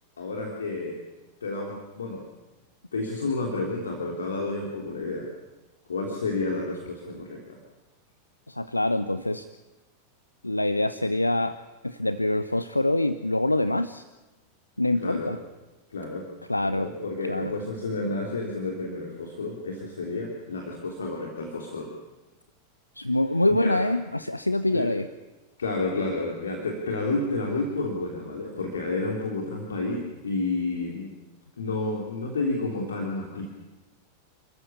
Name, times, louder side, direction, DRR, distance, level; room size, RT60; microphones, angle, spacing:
voice 1, 0.2-1.0 1.4-2.3 2.9-5.3 5.9-7.6 15.0-15.3 15.9-16.3 16.6-21.9 23.6-23.8 24.7-24.9 25.6-31.1 31.6-33.5, left 3 dB, 70° left, 0 dB, 3.4 m, -30 dB
voice 2, 8.5-9.5 10.4-11.6 11.8-14.0 14.8-15.4 16.5-16.9 17.3-17.5 23.0-25.0, left 1 dB, 85° left, 13 dB, 0.7 m, -25 dB
28.5 x 14.5 x 8.6 m, 1.1 s
figure-of-eight pair, 90°, 0 cm